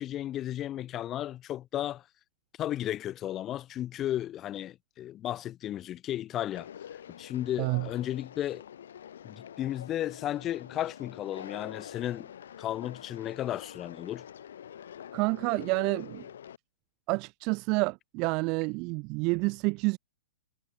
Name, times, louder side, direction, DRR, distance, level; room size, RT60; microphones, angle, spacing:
voice 1, 0.0-2.0 2.6-8.6 9.2-12.3 12.6-14.2, left 12 dB, 15° left, 2.0 m, -34 dB
Conversation, 6.5-16.6, left 9 dB, 60° left, 4.3 m, -46 dB
voice 2, 15.1-16.2 17.1-20.0, right 29 dB, 25° right, 0.3 m, -29 dB
hypercardioid pair, 180°, 0 cm